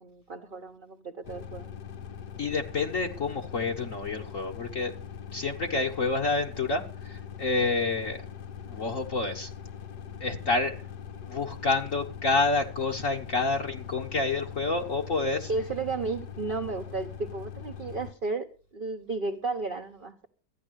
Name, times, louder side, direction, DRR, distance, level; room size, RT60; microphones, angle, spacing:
voice 1, 0.0-1.7 15.5-18.5 18.7-20.3, right 3 dB, 35° right, 2 dB, 1.1 m, -33 dB
sound 1, 1.2-18.1, left 8 dB, 70° left, 1.5 m, -42 dB
voice 2, 2.4-4.9 5.3-8.2 8.7-9.5 10.2-10.8 11.3-15.5, left 3 dB, 50° left, 1 dB, 1.6 m, -28 dB
14.5 x 10.0 x 6.4 m, 0.38 s
omnidirectional pair, 1.9 m